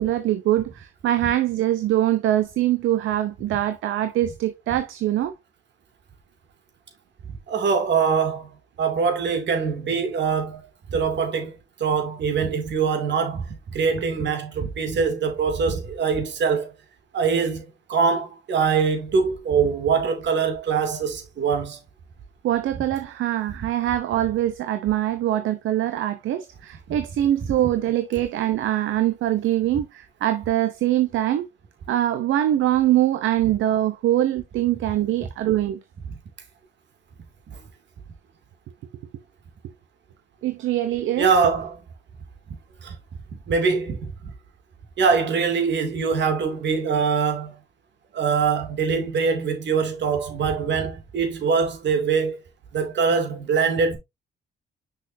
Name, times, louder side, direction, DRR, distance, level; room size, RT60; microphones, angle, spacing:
voice 1, 0.0-5.3 22.4-31.4 31.9-35.8 40.4-41.3, right 13 dB, 80° right, 0.8 m, -23 dB
voice 2, 7.5-8.5 8.8-10.6 10.9-11.5 11.8-16.7 17.1-21.8 36.1-36.2 37.5-37.6 41.2-41.8 42.8-42.9 43.5-44.1 45.0-47.5 48.1-52.4 52.7-54.0, right 5 dB, 65° right, 2.6 m, -23 dB
6.3 x 6.0 x 2.7 m
cardioid pair, 90°, 20 cm